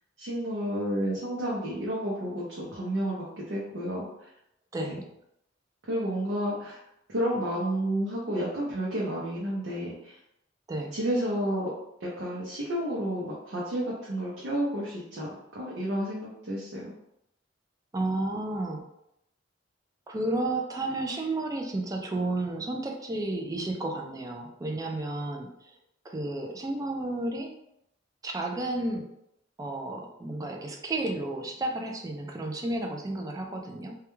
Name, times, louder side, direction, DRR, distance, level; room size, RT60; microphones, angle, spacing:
voice 1, 0.2-4.3 4.8-5.0 5.9-6.8 7.1-10.2 10.9-11.7 12.0-16.9, equal, 75° right, -6 dB, 0.6 m, -31 dB
voice 2, 17.9-18.8 20.1-25.5 26.0-27.5 28.2-29.1 29.6-34.0, right 2 dB, 20° right, 2 dB, 0.3 m, -32 dB
2.3 x 2.2 x 3.0 m, 0.79 s
head